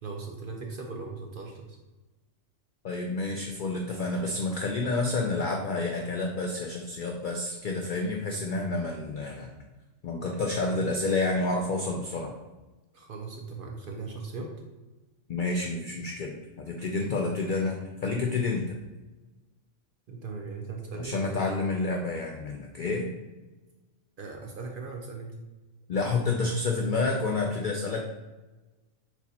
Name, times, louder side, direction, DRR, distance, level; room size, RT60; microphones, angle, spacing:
voice 1, 0.0-1.8 10.7-10.8 12.9-14.5 16.8-16.9 20.1-21.5 24.2-25.3, right 4 dB, 55° right, 1 dB, 0.6 m, -38 dB
voice 2, 2.8-9.5 10.0-12.3 15.3-18.8 21.0-23.1 25.9-28.0, left 3 dB, 75° left, 2 dB, 0.4 m, -29 dB
4.5 x 4.1 x 2.8 m, 1.2 s
omnidirectional pair, 1.4 m